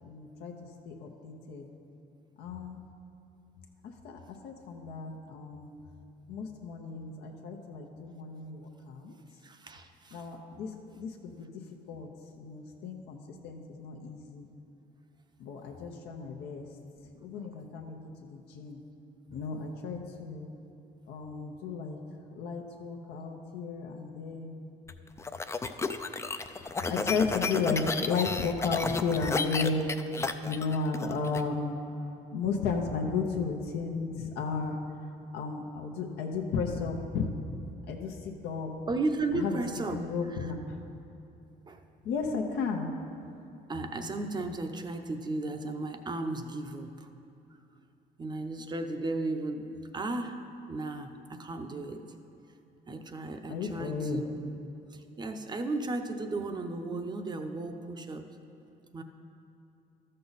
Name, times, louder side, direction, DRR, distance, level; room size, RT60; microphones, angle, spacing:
voice 1, 0.0-0.5 0.9-1.7 2.4-2.8 4.0-5.7 6.3-9.1 10.1-11.5 11.9-12.1 12.4-13.2 13.4-14.5 15.4-16.7 17.2-17.9 18.3-18.8 19.3-20.5 21.1-22.0 22.3-24.5 26.9-29.9 30.4-31.8 32.3-34.7 35.3-37.3 37.9-38.7 39.3-39.5 39.9-40.8 42.0-42.9 53.5-54.3, left 4 dB, 80° left, 1 dB, 0.9 m, -34 dB
voice 2, 9.4-10.3 38.9-40.5 41.7-41.8 43.7-47.1 48.2-50.4 50.7-52.1 52.9-54.3 54.9-58.3 58.9-59.0, right 2 dB, 25° right, 7 dB, 0.7 m, -35 dB
sound 1, 24.9-31.4, left 4 dB, 15° left, 0.4 m, -32 dB
13.0 x 6.6 x 4.1 m, 2.7 s
cardioid pair, 110°, 17 cm